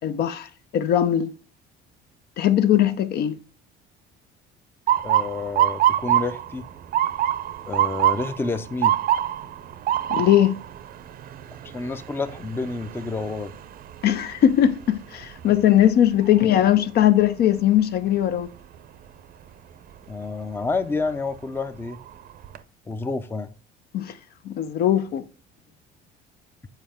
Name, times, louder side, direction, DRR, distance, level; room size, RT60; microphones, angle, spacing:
voice 1, 0.0-1.3 2.4-3.4 10.1-10.6 14.0-18.5 23.9-24.1 24.5-25.2, left 11 dB, 55° left, 0.6 m, -20 dB
Motor vehicle (road) / Siren, 4.9-16.8 17.2-17.7 18.4-18.7 20.6-20.9 21.4-21.5 21.9-22.6, right 11 dB, 50° right, 0.6 m, -26 dB
voice 2, 5.0-6.7 7.7-9.0 11.6-13.6 20.1-22.0 22.9-23.5, left 3 dB, 10° left, 0.5 m, -29 dB
7.4 x 4.5 x 3.6 m
cardioid pair, 105°, 19 cm